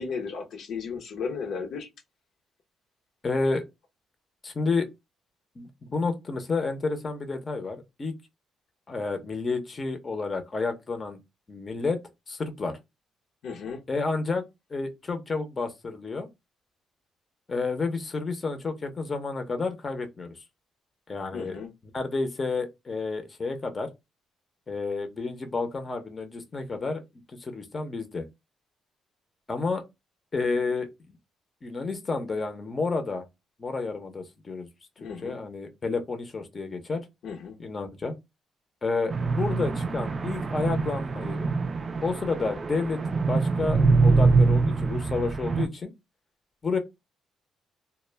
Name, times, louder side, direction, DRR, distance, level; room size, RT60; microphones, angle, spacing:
voice 1, 0.0-1.9 13.4-13.8 21.3-21.7 35.0-35.4 37.2-37.6, left 5 dB, 75° left, 0.6 m, -34 dB
voice 2, 3.2-3.6 4.4-4.9 5.6-8.1 8.9-11.2 11.5-12.0 12.3-12.7 13.9-14.4 14.7-16.3 17.5-20.3 21.1-21.6 21.9-23.9 24.7-27.0 27.4-28.2 29.5-29.8 30.3-30.9 31.6-33.2 33.6-34.7 35.2-37.0 37.6-38.1 38.8-41.5 42.0-45.9 46.6-46.8, left 3 dB, 35° left, 0.6 m, -30 dB
sound 1, 39.1-45.7, right 4 dB, 40° right, 0.3 m, -24 dB
2.1 x 2.1 x 3.2 m
cardioid pair, 90°, 0 cm